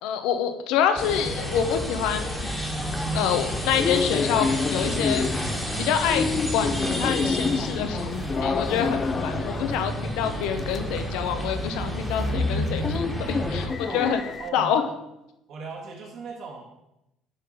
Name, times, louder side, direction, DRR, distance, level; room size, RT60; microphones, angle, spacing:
voice 1, 0.0-2.5 3.1-5.2 5.8-6.3 6.5-14.2 14.5-14.9, left 8 dB, 80° left, 7 dB, 0.8 m, -27 dB
sound 1, 1.0-13.7, equal, 5° left, 1.4 m, -30 dB
sound 2, 2.7-14.5, left 5 dB, 25° left, 0.5 m, -30 dB
voice 2, 14.4-14.8 15.5-16.6, right 4 dB, 55° right, -2 dB, 1.9 m, -38 dB
9.6 x 3.9 x 5.5 m, 0.88 s
cardioid pair, 145°, 0 cm